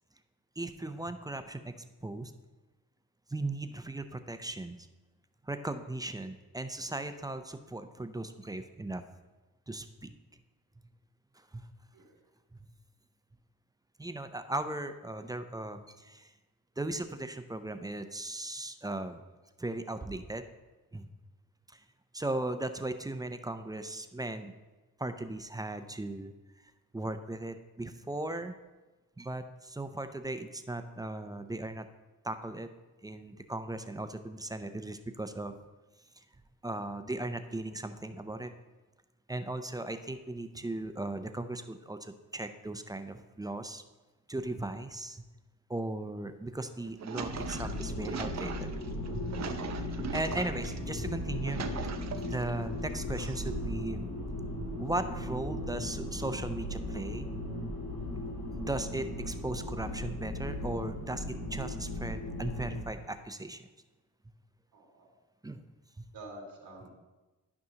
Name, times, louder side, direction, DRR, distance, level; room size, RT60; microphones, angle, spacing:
voice 1, 0.6-2.3 3.3-4.8 5.4-9.0 9.7-10.1 11.3-11.7 14.0-16.3 16.8-19.2 19.6-20.4 20.9-21.1 21.7-21.8 22.1-24.5 25.0-26.3 26.9-28.6 29.2-31.9 32.2-32.7 33.0-35.6 36.2-36.3 36.6-38.5 39.3-43.8 44.3-45.2 45.7-48.7 49.1-49.2 49.8-51.6 52.2-54.1 54.8-57.3 58.5-63.7 65.4-65.6, right 2 dB, 10° right, 9 dB, 0.4 m, -37 dB
voice 2, 11.9-12.2 64.7-65.1 66.1-66.9, right 2 dB, 85° right, 0 dB, 1.9 m, -48 dB
sound 1, 46.7-50.8 51.2-52.5 53.1-53.8, right 6 dB, 50° right, 0.7 m, -40 dB
sound 2, 47.2-62.9, left 1 dB, 55° left, 2.1 m, -37 dB
12.0 x 5.4 x 2.9 m, 1.1 s
cardioid pair, 85°, 34 cm